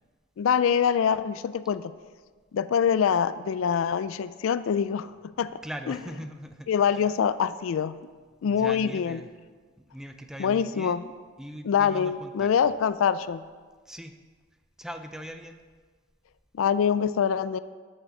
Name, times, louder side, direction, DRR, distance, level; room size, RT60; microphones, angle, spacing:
voice 1, 0.4-1.9 2.5-5.1 5.4-5.5 5.9-6.0 6.7-8.0 8.4-9.2 10.4-11.0 11.7-13.4 16.5-17.6, left 7 dB, 70° left, 14 dB, 0.3 m, -24 dB
voice 2, 5.6-7.1 8.4-9.3 9.8-11.1 11.4-12.7 13.9-14.2 14.8-15.6, equal, 5° right, 6 dB, 0.5 m, -41 dB
9.0 x 6.6 x 5.7 m, 1.5 s
head